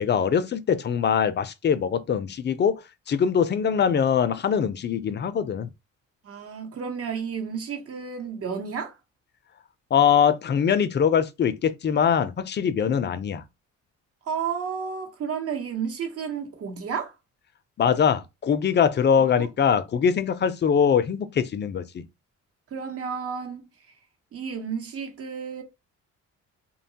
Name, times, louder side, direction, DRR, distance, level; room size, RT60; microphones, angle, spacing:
voice 1, 0.0-2.8 3.1-5.7 9.9-13.4 17.8-22.0, left 7 dB, 35° left, 0.4 m, -22 dB
voice 2, 6.2-9.0 14.3-17.1 19.4-19.5 22.7-23.7 24.3-25.6, right 6 dB, 50° right, 0.9 m, -32 dB
2.7 x 2.2 x 2.7 m
cardioid pair, 90°, 30 cm